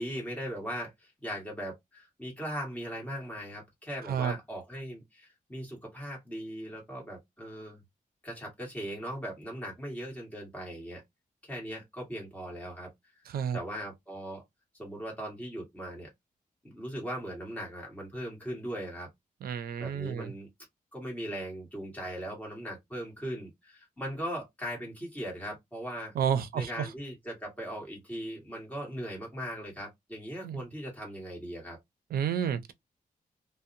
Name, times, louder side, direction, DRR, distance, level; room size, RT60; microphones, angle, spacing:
voice 1, 0.0-7.8 8.2-11.0 11.4-12.9 13.5-14.4 14.7-16.1 16.6-19.1 19.8-20.5 20.9-26.1 26.5-31.8, equal, 10° left, 1.4 m, -39 dB
voice 2, 13.3-13.6 19.4-20.3 26.2-26.9 30.4-30.6 32.1-32.7, right 8 dB, 85° right, 0.4 m, -30 dB
2.6 x 2.0 x 2.5 m
wide cardioid pair, 150°, 15 cm